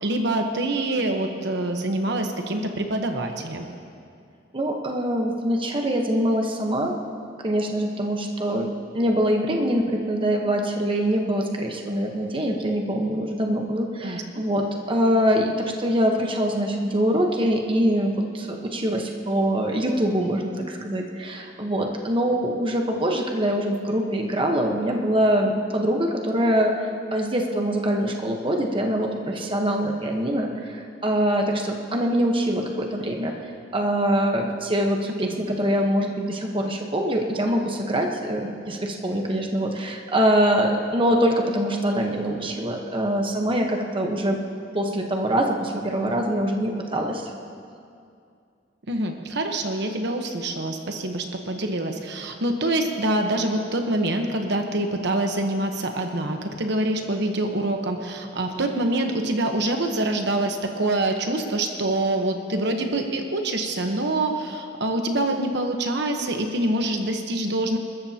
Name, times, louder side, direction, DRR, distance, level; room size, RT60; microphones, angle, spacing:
voice 1, 0.0-3.7 14.0-14.2 35.2-35.3 48.9-67.8, right 1 dB, 65° right, 4 dB, 1.1 m, -25 dB
voice 2, 4.5-6.9 7.4-44.4 44.7-47.2, equal, 30° right, 2 dB, 1.1 m, -24 dB
28.0 x 13.5 x 2.9 m, 2.4 s
head